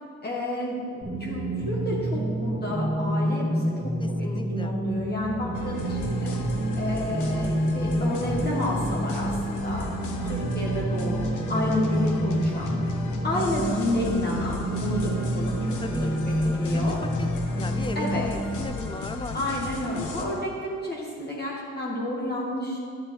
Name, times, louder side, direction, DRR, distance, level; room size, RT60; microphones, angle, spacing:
voice 1, 0.2-3.6 4.2-6.3 6.7-9.9 10.3-12.8 13.2-15.8 16.3-17.0 17.9-18.2 19.3-22.8, left 1 dB, 35° left, -4 dB, 1.7 m, -30 dB
sound 1, 1.0-18.6, right 1 dB, 15° right, 1.8 m, -28 dB
voice 2, 4.0-4.8 10.2-10.7 15.8-16.1 16.4-16.9 17.2-17.3 17.5-19.4, left 3 dB, 15° left, 9 dB, 0.5 m, -37 dB
sound 2, 5.5-20.3, left 3 dB, 80° left, 1.0 m, -35 dB
11.0 x 7.3 x 3.2 m, 2.1 s
cardioid pair, 90°, 30 cm